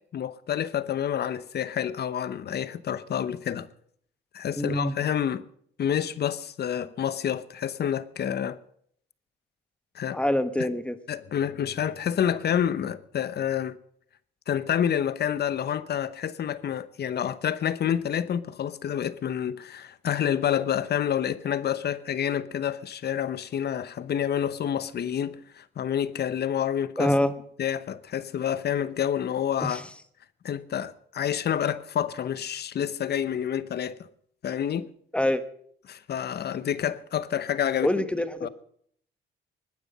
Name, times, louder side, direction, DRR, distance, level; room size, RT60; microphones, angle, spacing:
voice 1, 0.1-3.7 4.3-5.4 5.8-8.6 9.9-10.2 10.6-10.7 11.1-13.8 14.5-27.1 27.6-29.8 30.4-34.0 34.4-34.9 35.9-37.9 38.4-38.5, left 9 dB, 55° left, 0.9 m, -28 dB
voice 2, 4.6-4.9 10.1-11.0 27.0-27.3 29.7-29.8 35.1-35.4 37.8-38.5, left 1 dB, 5° left, 1.2 m, -25 dB
21.5 x 9.7 x 5.5 m
cardioid pair, 90°, 20 cm